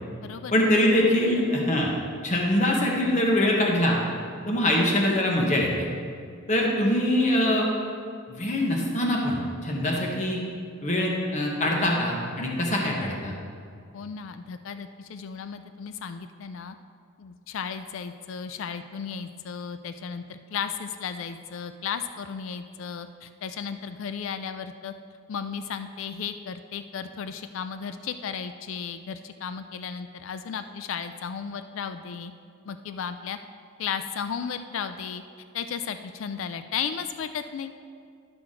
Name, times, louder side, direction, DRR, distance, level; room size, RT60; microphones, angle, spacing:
voice 1, 0.5-1.9 2.2-4.0 4.5-5.9 6.5-7.7 8.3-10.4 10.8-13.3, left 1 dB, 35° left, -1 dB, 1.1 m, -23 dB
voice 2, 13.9-16.8 17.2-24.9 25.3-32.3 32.7-33.4 33.8-35.2 35.5-37.7, left 7 dB, 65° left, 10 dB, 0.3 m, -34 dB
12.0 x 6.0 x 3.7 m, 2.2 s
head